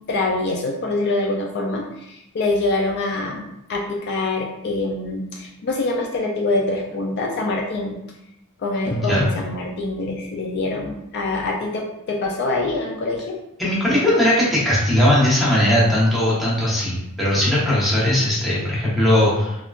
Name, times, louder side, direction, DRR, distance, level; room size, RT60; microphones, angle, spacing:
voice 1, 0.1-8.0 8.6-13.3, left 2 dB, 50° left, -1 dB, 0.4 m, -25 dB
voice 2, 8.9-9.3 13.6-19.6, left 1 dB, ahead, -8 dB, 0.9 m, -19 dB
3.5 x 2.3 x 2.4 m, 0.85 s
head